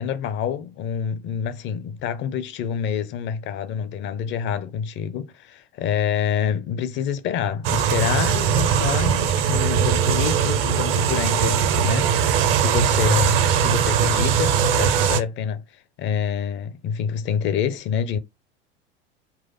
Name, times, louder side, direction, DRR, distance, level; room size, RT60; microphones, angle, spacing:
voice 1, 0.0-18.2, left 8 dB, 35° left, 0.6 m, -27 dB
sound 1, 7.6-15.2, right 8 dB, 40° right, 0.7 m, -20 dB
4.1 x 2.5 x 3.9 m
figure-of-eight pair, 75°, 31 cm